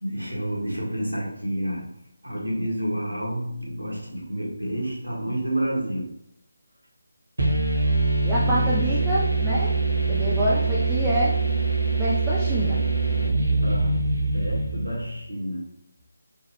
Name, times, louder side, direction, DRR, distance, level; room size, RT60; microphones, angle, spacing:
voice 1, 0.0-1.9 2.2-6.1 8.4-8.7 13.6-14.0 14.3-15.8, right 1 dB, 80° right, -3 dB, 1.2 m, -29 dB
sound 1, 7.4-15.1, right 3 dB, 60° right, 1.1 m, -23 dB
voice 2, 8.2-9.7 10.1-11.3 12.0-12.8, equal, 5° right, -9 dB, 0.4 m, -26 dB
3.4 x 2.2 x 3.2 m, 0.74 s
figure-of-eight pair, 155°, 0 cm